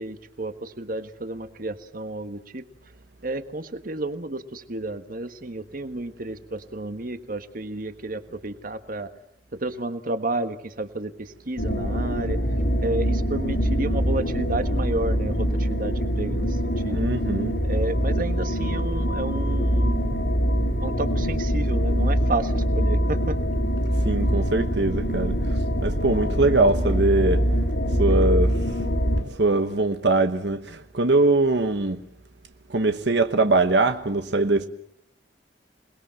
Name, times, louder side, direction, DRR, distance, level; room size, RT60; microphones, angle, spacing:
voice 1, 0.0-2.7 3.2-9.1 9.5-12.4 12.8-17.0 17.6-20.2 20.8-23.4, right 2 dB, 50° right, 1.5 m, -31 dB
sound 1, 11.6-29.2, equal, 85° left, 4.5 m, -24 dB
voice 2, 16.9-17.5 24.0-25.4 25.8-27.4 28.0-28.6 29.4-32.0 32.7-34.7, right 2 dB, 75° right, 1.1 m, -22 dB
28.0 x 20.0 x 7.6 m
head